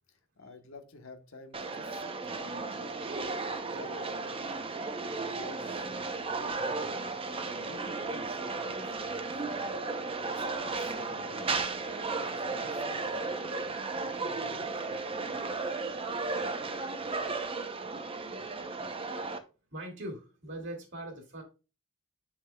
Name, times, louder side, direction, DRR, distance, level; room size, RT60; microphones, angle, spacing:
voice 1, 0.1-3.3 3.7-4.5 5.2-7.1 7.6-9.7 10.2-11.5 12.2-13.2 13.5-15.2, left 3 dB, 65° left, 1.1 m, -51 dB
sound 1, 1.5-19.4, right 3 dB, 25° right, 0.6 m, -35 dB
voice 2, 19.7-21.4, right 1 dB, 55° right, 2.1 m, -41 dB
7.4 x 6.3 x 2.3 m
head